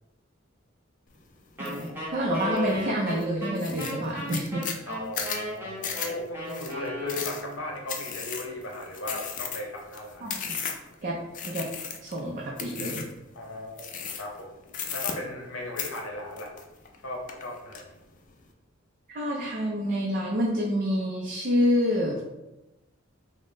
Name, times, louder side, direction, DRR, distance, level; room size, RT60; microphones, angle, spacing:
sound 1, 1.6-1.9 2.3-2.8 3.2-3.3 3.6-10.9 11.3-12.2 12.6-13.2 13.8-14.4 14.7-15.5 15.8-17.0 17.3-17.8, left 7 dB, 40° left, 0.4 m, -35 dB
Wind instrument woodwind instrument, 1.6-7.7, equal, 10° right, 1.0 m, -36 dB
voice 1, 1.6-4.7 10.2-10.4 11.0-11.2 11.5-11.7 12.0-13.1 19.1-22.2, equal, 45° right, -3 dB, 0.5 m, -27 dB
voice 2, 4.9-10.3 13.3-13.9 14.2-14.5 14.9-16.5 17.0-17.9, left 1 dB, 75° left, -1 dB, 0.8 m, -37 dB
3.7 x 2.1 x 3.7 m, 0.99 s
head